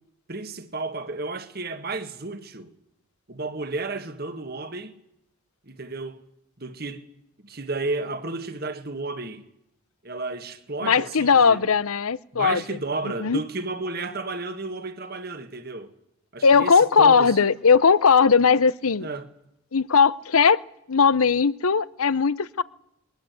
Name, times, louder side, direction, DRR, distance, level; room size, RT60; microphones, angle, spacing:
voice 1, 0.3-2.7 3.3-5.0 5.6-6.2 6.6-7.0 7.4-9.4 10.0-11.7 12.3-15.9 16.3-17.4 19.0-19.3, right 3 dB, 45° right, 1.7 m, -32 dB
voice 2, 10.8-12.6 13.2-13.4 16.4-19.1 19.7-20.6 20.9-22.6, left 5 dB, 80° left, 0.8 m, -18 dB
22.5 x 20.5 x 8.2 m
head